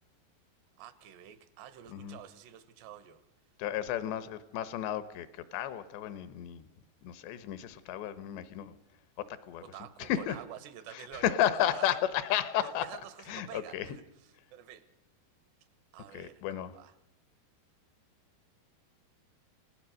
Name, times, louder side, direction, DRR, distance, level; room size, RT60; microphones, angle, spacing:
voice 1, 0.8-3.2 9.6-11.9 12.6-14.0 14.5-14.9 15.9-16.9, right 11 dB, 85° right, 14 dB, 3.3 m, -48 dB
voice 2, 3.6-6.7 7.0-8.8 9.2-9.6 10.0-10.4 10.9-12.9 13.3-13.9 16.1-16.7, left 11 dB, 80° left, 14 dB, 3.3 m, -33 dB
29.5 x 17.5 x 6.4 m, 0.83 s
omnidirectional pair, 5.0 m